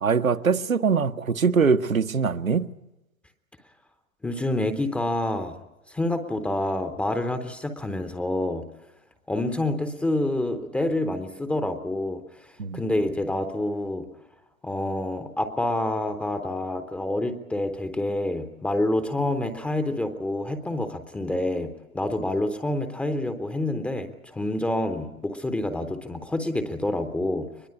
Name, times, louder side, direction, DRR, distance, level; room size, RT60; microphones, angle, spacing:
voice 1, 0.0-2.7 12.6-12.8, right 5 dB, 75° right, 1.2 m, -22 dB
voice 2, 4.2-5.6 5.9-8.6 9.3-14.1 14.6-21.7 21.9-27.5, left 1 dB, 5° left, 0.8 m, -27 dB
23.0 x 21.5 x 8.6 m
figure-of-eight pair, 120°, 41 cm